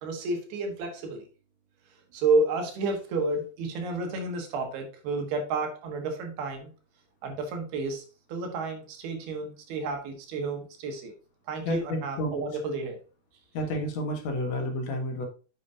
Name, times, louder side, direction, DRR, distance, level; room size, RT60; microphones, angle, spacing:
voice 1, 0.0-1.2 1.9-6.7 7.2-11.1 11.5-13.0, right 3 dB, 75° right, 4 dB, 3.2 m, -31 dB
voice 2, 11.7-12.4 13.5-15.2, left 1 dB, 60° left, 3 dB, 1.9 m, -30 dB
9.0 x 6.8 x 2.7 m, 0.34 s
omnidirectional pair, 4.7 m